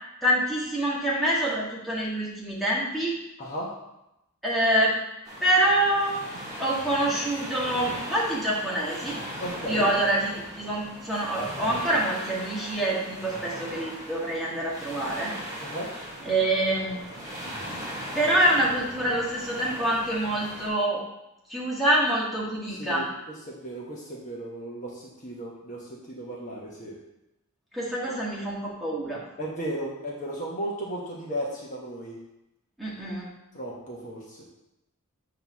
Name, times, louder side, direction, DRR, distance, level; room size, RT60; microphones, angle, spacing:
voice 1, 0.2-3.2 4.4-5.0 5.4-6.2 6.6-9.2 9.7-15.3 16.2-17.0 18.1-21.0 21.5-23.0 27.7-29.2 32.8-33.3, right 1 dB, ahead, -7 dB, 1.5 m, -26 dB
voice 2, 3.4-3.7 9.4-9.9 15.6-15.9 22.7-27.0 29.4-32.2 33.5-34.4, right 1 dB, 35° left, -3 dB, 1.0 m, -35 dB
sound 1, 5.2-20.7, equal, 15° right, 1.7 m, -38 dB
7.6 x 3.0 x 6.1 m, 0.90 s
head